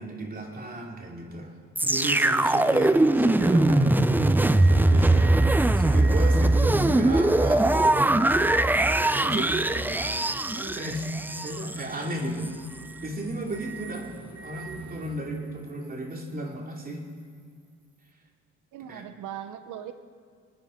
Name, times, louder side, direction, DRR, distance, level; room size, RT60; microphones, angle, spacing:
voice 1, 0.0-1.5 1.8-8.2 9.1-10.1 10.5-11.1 11.4-12.5 13.0-17.0 18.9-19.0, right 1 dB, 30° right, 0 dB, 2.8 m, -34 dB
sound 1, 1.8-11.8 12.4-12.5, right 2 dB, 5° right, 0.4 m, -21 dB
sound 2, 4.3-15.1, right 4 dB, 65° right, 2.3 m, -44 dB
voice 2, 6.8-7.3 9.2-9.7 18.7-19.9, right 10 dB, 90° right, 10 dB, 0.9 m, -40 dB
27.0 x 9.7 x 4.4 m, 2.1 s
cardioid pair, 90°, 30 cm